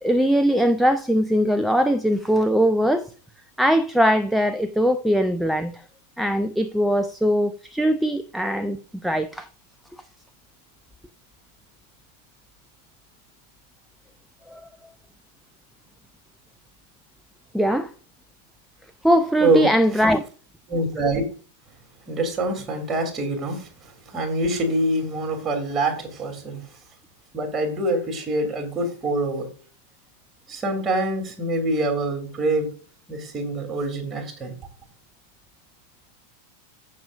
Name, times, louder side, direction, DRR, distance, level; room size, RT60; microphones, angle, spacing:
voice 1, 0.0-3.1 3.6-5.8 6.2-8.8 9.0-9.5 14.5-14.6 17.5-17.9 19.0-20.2, equal, ahead, 0.6 m, -21 dB
voice 2, 20.7-21.2 22.1-23.7 24.1-26.6 27.3-29.5 30.5-32.7 33.1-34.5, right 2 dB, 20° right, 3.0 m, -25 dB
15.5 x 6.6 x 2.5 m
figure-of-eight pair, 90°, 0 cm